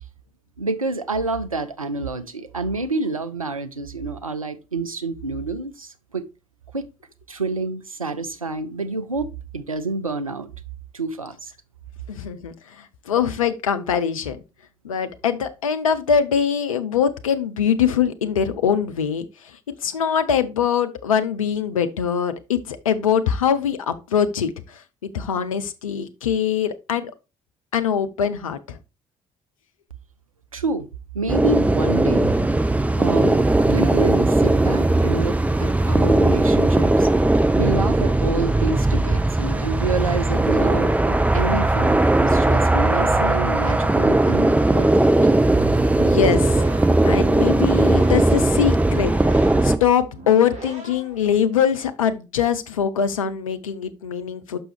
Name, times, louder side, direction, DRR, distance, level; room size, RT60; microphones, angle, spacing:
voice 1, 0.6-6.2 6.7-6.9 7.3-10.5 10.9-11.5 30.5-30.9 31.1-32.3 33.0-37.1 37.6-45.1, right 3 dB, 90° right, 0.4 m, -28 dB
voice 2, 12.1-14.4 14.8-19.3 19.8-27.1 27.7-28.8 46.0-46.6 47.0-54.6, left 8 dB, 80° left, 0.5 m, -23 dB
sound 1, 31.3-49.8, right 2 dB, 10° right, 0.7 m, -18 dB
sound 2, 46.0-51.2, right 2 dB, 40° right, 3.2 m, -40 dB
6.1 x 6.0 x 3.2 m
figure-of-eight pair, 40°, 17 cm